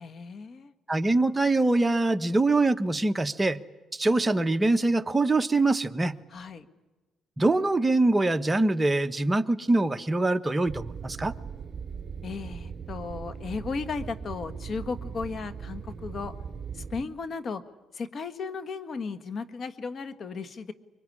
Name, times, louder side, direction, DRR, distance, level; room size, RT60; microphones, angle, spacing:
voice 1, 0.0-0.7 6.3-6.7 12.2-16.4 16.7-17.6 17.9-20.7, left 4 dB, 50° left, 11 dB, 1.5 m, -35 dB
voice 2, 0.9-3.6 3.9-6.1 7.4-11.3, right 2 dB, 15° right, 8 dB, 1.1 m, -24 dB
sound 1, 10.6-17.1, right 6 dB, 50° right, 4.9 m, -39 dB
24.5 x 23.0 x 9.9 m, 1.2 s
cardioid pair, 90°, 0 cm